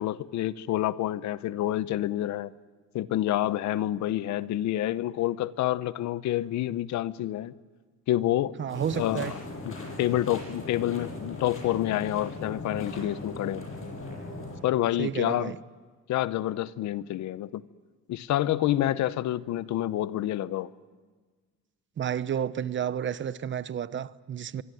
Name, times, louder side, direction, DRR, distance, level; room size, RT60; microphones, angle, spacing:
voice 1, 0.0-2.5 2.9-7.5 8.1-8.5 8.9-9.4 9.6-13.7 14.6-15.5 16.1-17.6 18.1-20.7, left 13 dB, 70° left, 0.9 m, -28 dB
voice 2, 8.6-9.3 15.0-15.6 22.0-24.6, right 9 dB, 40° right, 0.9 m, -31 dB
sound 1, 8.7-14.6, left 2 dB, 45° left, 7.7 m, -39 dB
24.5 x 24.5 x 9.3 m
cardioid pair, 120°, 29 cm